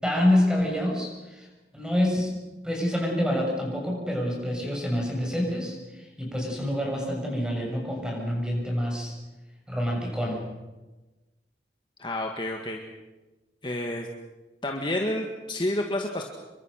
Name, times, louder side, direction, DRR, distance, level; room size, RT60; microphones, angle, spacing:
voice 1, 0.0-1.5 1.7-2.3 2.6-9.1 9.7-10.4, left 1 dB, 5° right, -1 dB, 7.0 m, -27 dB
voice 2, 12.0-12.8 13.6-14.1 14.6-16.2, left 1 dB, 25° left, 2 dB, 1.9 m, -29 dB
28.0 x 23.5 x 6.5 m, 1.1 s
head